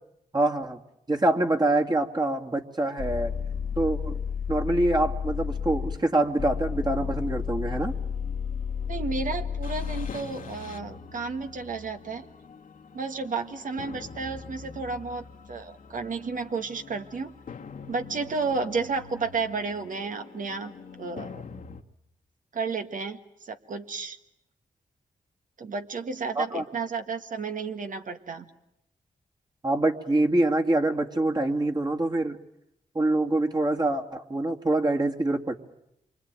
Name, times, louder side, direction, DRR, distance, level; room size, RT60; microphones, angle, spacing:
voice 1, 0.3-0.8 1.1-3.3 3.8-4.2 4.5-7.9 26.4-26.6 29.6-32.4 32.9-35.5, right 2 dB, 30° right, 1 dB, 2.2 m, -25 dB
sound 1, 3.0-21.8, left 7 dB, 75° left, 1.7 m, -35 dB
voice 2, 8.9-12.3 12.9-17.3 17.9-21.4 22.5-24.2 25.6-28.5, right 4 dB, 65° right, 7 dB, 1.6 m, -32 dB
27.0 x 24.5 x 9.1 m, 0.81 s
cardioid pair, 65°, 14 cm